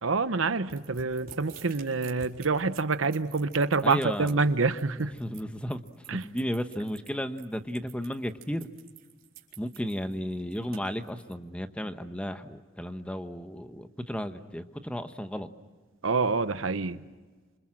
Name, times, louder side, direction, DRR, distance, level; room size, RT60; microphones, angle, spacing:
voice 1, 0.0-5.1 6.1-6.3 16.0-17.0, right 4 dB, 80° right, 12 dB, 1.0 m, -27 dB
sound 1, 0.7-11.3, right 7 dB, 50° right, 4.2 m, -50 dB
voice 2, 3.8-4.4 5.2-5.8 6.1-8.7 9.6-15.5, equal, 5° left, 8 dB, 1.1 m, -34 dB
27.5 x 27.0 x 7.7 m, 1.3 s
head